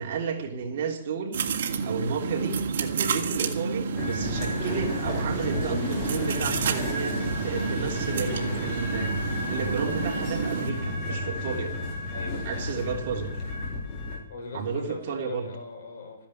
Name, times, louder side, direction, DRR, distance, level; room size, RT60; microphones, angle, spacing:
voice 1, 0.0-1.3 1.8-7.2 7.4-11.7 12.4-13.3 14.5-15.5, right 5 dB, 40° right, 0 dB, 3.4 m, -32 dB
sound 1, 1.3-10.7, right 6 dB, 55° right, 2.2 m, -30 dB
sound 2, 4.0-14.2, left 1 dB, 20° left, 3.9 m, -32 dB
sound 3, 4.2-10.4, left 2 dB, 50° left, 5.5 m, -41 dB
voice 2, 12.1-12.8 14.3-16.3, left 3 dB, 75° left, 3 dB, 6.8 m, -41 dB
14.5 x 10.5 x 8.8 m, 0.68 s
hypercardioid pair, 175°, 0 cm